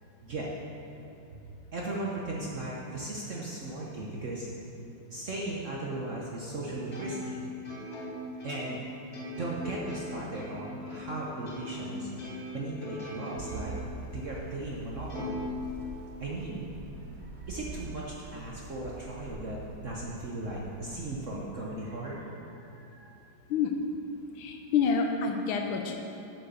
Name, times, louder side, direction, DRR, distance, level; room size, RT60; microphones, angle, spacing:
voice 1, 1.7-4.5 5.1-7.4 8.4-8.8 9.3-12.1 12.5-13.7 14.1-15.4 16.2-16.7 17.2-23.1, right 2 dB, 50° right, -4 dB, 1.0 m, -37 dB
Plucked string instrument, 6.9-11.9 12.2-13.9 14.3-14.4 15.1-16.3, left 1 dB, 50° left, 2.1 m, -40 dB
sound 1, 13.4-21.5, right 3 dB, 85° right, 0.6 m, -44 dB
voice 2, 24.4-26.0, left 6 dB, 85° left, 3 dB, 1.5 m, -28 dB
7.8 x 6.6 x 6.9 m, 2.8 s
omnidirectional pair, 2.2 m